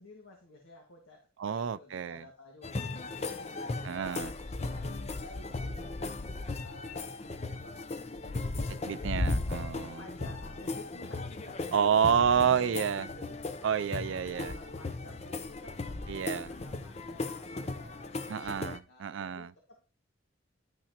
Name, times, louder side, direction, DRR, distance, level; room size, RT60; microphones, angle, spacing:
voice 1, 0.0-4.2 4.6-6.2 6.6-9.5 10.0-13.4 13.9-15.8 16.3-18.5 18.9-19.9, left 2 dB, 80° left, 1.8 m, -52 dB
voice 2, 1.4-2.2 3.8-4.3 8.9-10.0 11.7-13.1 13.6-14.5 16.1-16.5 18.3-19.5, right 7 dB, 65° right, 0.4 m, -29 dB
sound 1, 2.6-18.8, left 2 dB, 30° left, 0.5 m, -37 dB
11.0 x 5.8 x 2.9 m
head